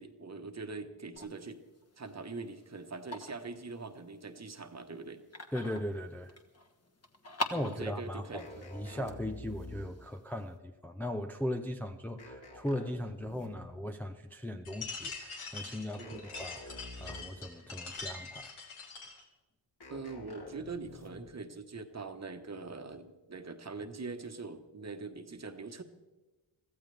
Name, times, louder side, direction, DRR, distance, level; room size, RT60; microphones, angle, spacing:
voice 1, 0.0-1.6 2.0-5.2 7.5-8.4 8.9-9.1 16.0-16.2 19.9-25.8, right 4 dB, 35° right, 7 dB, 1.3 m, -43 dB
sound 1, 1.1-10.6, left 1 dB, 30° left, 1.6 m, -45 dB
voice 2, 5.5-6.3 7.5-8.5 8.7-18.5, left 1 dB, 5° left, 4 dB, 0.6 m, -38 dB
sound 2, 8.4-10.1 12.2-13.8 16.0-17.5 19.8-21.4, left 1 dB, 50° left, 3.7 m, -49 dB
sound 3, 14.6-19.2, left 4 dB, 85° left, 3.5 m, -44 dB
24.0 x 15.5 x 3.4 m, 1.1 s
wide cardioid pair, 115°, 48 cm